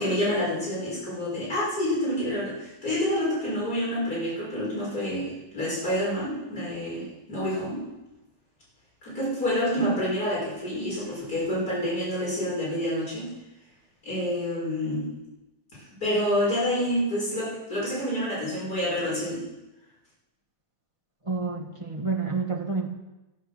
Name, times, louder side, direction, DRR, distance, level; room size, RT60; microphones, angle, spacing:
voice 1, 0.0-7.8 9.0-13.3 14.0-15.1 15.7-19.5, equal, 60° left, -7 dB, 6.5 m, -28 dB
voice 2, 21.2-22.9, right 4 dB, 20° right, 0 dB, 1.3 m, -29 dB
13.0 x 10.0 x 6.5 m, 1.0 s
omnidirectional pair, 1.9 m